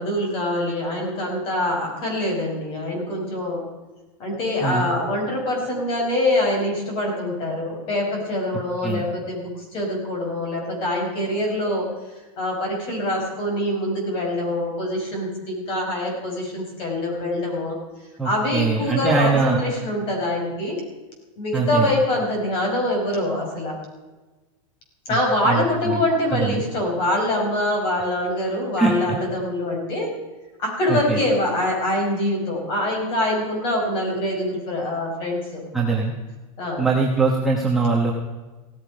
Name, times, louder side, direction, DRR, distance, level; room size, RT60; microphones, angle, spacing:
voice 1, 0.0-3.6 4.2-11.9 12.4-17.7 18.2-20.8 21.4-23.8 25.1-30.1 30.6-35.6 36.6-36.9, left 1 dB, 30° left, 0 dB, 5.0 m, -24 dB
voice 2, 18.2-19.6 21.5-21.9 25.4-26.0 26.3-26.6 28.8-29.2 30.9-31.2 35.7-36.1 36.8-38.1, right 4 dB, ahead, -4 dB, 1.2 m, -22 dB
16.5 x 13.5 x 5.2 m, 1.2 s
supercardioid pair, 175°, 18 cm